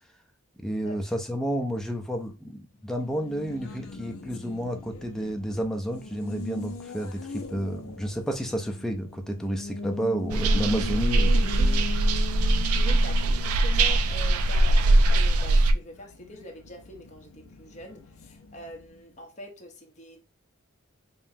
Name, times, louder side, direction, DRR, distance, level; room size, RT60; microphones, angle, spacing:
voice 1, 0.6-11.5, equal, ahead, 0.5 m, -31 dB
Race car auto racing, 3.0-19.2, left 2 dB, 75° left, 0.6 m, -40 dB
sound 1, 10.3-15.7, right 2 dB, 85° right, 0.4 m, -21 dB
voice 2, 11.5-11.9 12.7-20.3, left 1 dB, 35° left, 0.8 m, -44 dB
5.3 x 2.1 x 2.7 m
head